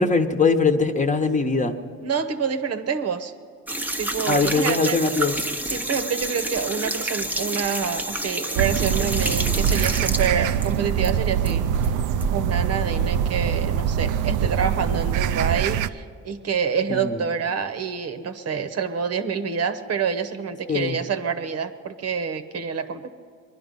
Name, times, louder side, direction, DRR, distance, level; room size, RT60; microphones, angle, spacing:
voice 1, 0.0-1.7 4.3-5.3 16.9-17.2 20.7-21.0, left 4 dB, 25° left, 5 dB, 1.0 m, -21 dB
voice 2, 2.0-3.3 4.0-5.0 5.6-11.7 12.3-23.1, right 6 dB, 55° right, 9 dB, 1.0 m, -27 dB
sound 1, 3.7-11.1 11.4-12.3, right 1 dB, 5° right, 0.7 m, -29 dB
sound 2, 8.6-15.9, right 9 dB, 85° right, 0.5 m, -23 dB
21.5 x 11.5 x 5.4 m, 2.2 s
cardioid pair, 90°, 30 cm